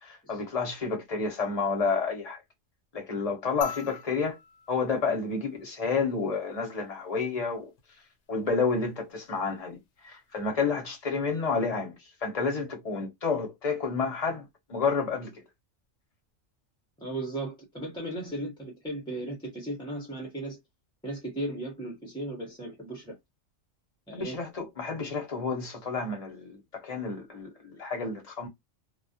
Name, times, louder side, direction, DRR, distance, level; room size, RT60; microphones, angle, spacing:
voice 1, 0.0-2.4 2.9-4.4 4.7-7.7 8.3-14.4 14.7-15.3 24.1-28.5, left 4 dB, 35° left, 0.8 m, -30 dB
sound 1, 3.6-6.2 7.8-7.9, left 7 dB, 70° left, 0.9 m, -42 dB
voice 2, 17.0-20.6 21.0-23.2 24.1-24.4, right 1 dB, 5° left, 0.6 m, -36 dB
2.3 x 2.1 x 2.6 m
omnidirectional pair, 1.3 m